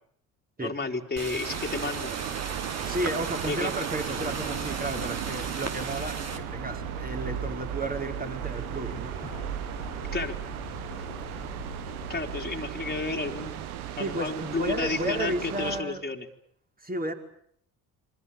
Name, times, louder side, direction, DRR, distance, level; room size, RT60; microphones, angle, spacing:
voice 1, 0.6-2.1 3.5-3.7 10.1-10.4 12.1-13.7 14.0-16.3, left 3 dB, 20° left, 2 dB, 3.7 m, -32 dB
sound 1, 1.2-6.4, right 4 dB, 35° right, 4.2 m, -36 dB
sound 2, 1.4-15.8, right 11 dB, 80° right, 1.9 m, -36 dB
voice 2, 2.8-9.4 14.0-16.0 16.8-17.1, right 1 dB, 20° right, 4 dB, 5.1 m, -33 dB
Aircraft, 3.9-12.4, left 14 dB, 75° left, 2.0 m, -44 dB
28.5 x 24.5 x 6.9 m, 0.66 s
hypercardioid pair, 55°, 43 cm